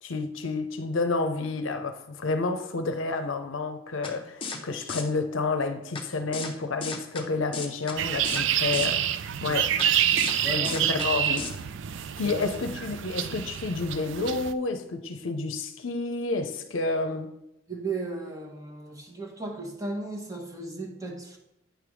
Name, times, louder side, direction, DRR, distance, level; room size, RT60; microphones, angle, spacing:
voice 1, 0.0-9.0 9.4-9.8 10.5-11.5 12.2-17.3, left 3 dB, 75° left, 0.6 m, -30 dB
sound 1, 4.0-4.1 4.4-4.6 4.9-5.0 6.0-6.1 6.3-6.5 6.8-7.2 7.5-8.0 8.2-8.4 8.7-8.9 9.8-9.9 10.2-10.4 10.6-11.1 11.4-11.5, left 4 dB, 25° left, 0.8 m, -34 dB
sound 2, 8.0-14.5, right 10 dB, 60° right, 0.3 m, -27 dB
voice 2, 17.7-21.4, right 2 dB, 15° right, 1.1 m, -35 dB
9.0 x 3.4 x 6.1 m
head